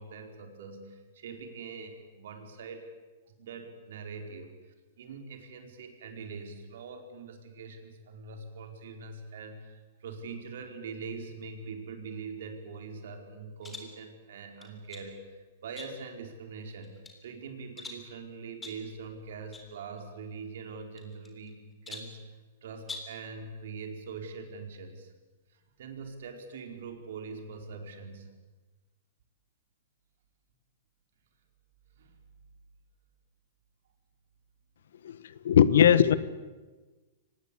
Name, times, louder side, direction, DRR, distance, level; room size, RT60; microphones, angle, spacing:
voice 1, 0.0-2.9 3.3-25.1 25.5-28.3 32.0-32.1 35.5-36.0, right 4 dB, 70° right, 5 dB, 4.5 m, -43 dB
sound 1, 13.6-14.0 14.6-15.1 15.8-16.2 16.7-17.2 17.8-18.1 18.6-18.9 19.5-19.7 20.0-20.1 21.0-21.5 21.9-22.2 22.8-23.2, left 3 dB, 10° left, 3.4 m, -44 dB
voice 2, 35.4-36.1, left 9 dB, 80° left, 17 dB, 1.2 m, -19 dB
24.5 x 19.5 x 8.6 m, 1.3 s
hypercardioid pair, 155°, 0 cm